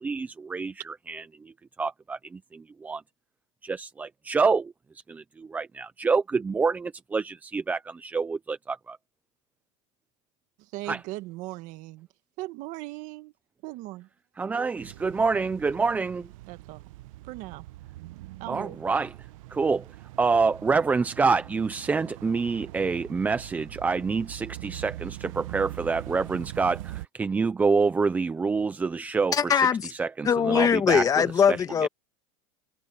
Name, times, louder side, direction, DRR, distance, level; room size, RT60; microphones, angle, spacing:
voice 1, 0.0-3.0 3.6-9.0 10.9-11.0 14.4-16.3 18.5-19.1 19.5-19.9 20.2-29.7 30.0-31.0 31.8-31.9, right 4 dB, 10° right, 0.4 m, -27 dB
voice 2, 10.6-12.1 12.4-13.3 13.6-14.1 16.5-16.8 17.2-17.7 18.4-18.8, right 19 dB, 45° right, 1.6 m, -38 dB
sound 1, 14.8-27.1, right 17 dB, 70° right, 0.9 m, -42 dB
voice 3, 29.3-29.9 30.2-31.9, left 7 dB, 20° left, 1.4 m, -21 dB
supercardioid pair, 155°, 18 cm